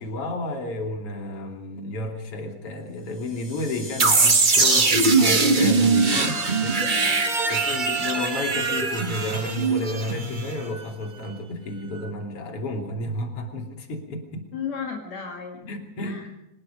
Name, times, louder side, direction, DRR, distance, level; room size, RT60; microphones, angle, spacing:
voice 1, 0.0-6.3 6.6-6.7 7.5-14.5 15.6-16.4, left 1 dB, 50° left, 2 dB, 3.8 m, -31 dB
sound 1, 3.1-4.9, left 1 dB, 85° left, 8.4 m, -37 dB
sound 2, 4.0-10.8, right 3 dB, 40° right, 0.7 m, -21 dB
sound 3, 5.3-10.8, right 6 dB, 60° right, 1.9 m, -37 dB
voice 2, 6.1-7.7 14.5-15.6 16.0-16.3, left 6 dB, 65° left, 0 dB, 3.3 m, -35 dB
25.5 x 20.0 x 5.2 m, 0.90 s
omnidirectional pair, 3.4 m